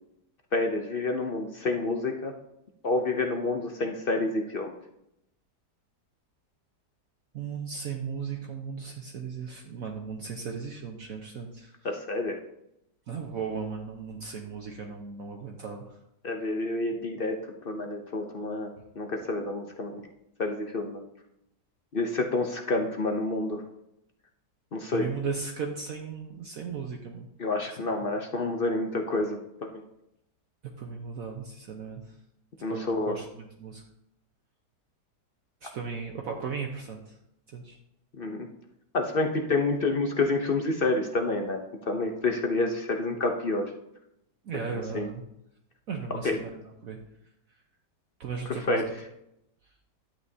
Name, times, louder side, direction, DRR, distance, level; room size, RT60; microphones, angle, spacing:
voice 1, 0.5-2.3 2.8-4.7 11.8-12.4 16.2-20.0 20.4-21.0 21.9-23.6 24.7-25.1 27.4-29.8 32.6-33.2 38.2-38.5 38.9-43.7 44.9-45.1 46.2-46.4 48.7-48.8, left 2 dB, 55° left, 4 dB, 0.6 m, -28 dB
voice 2, 7.3-11.7 13.1-15.9 24.9-27.3 27.7-28.0 30.8-32.1 32.7-33.8 35.6-37.2 37.5-37.8 44.4-45.2 45.9-47.0 48.2-48.8, right 5 dB, 60° right, 1 dB, 1.2 m, -36 dB
11.5 x 8.8 x 2.7 m, 0.82 s
omnidirectional pair, 1.8 m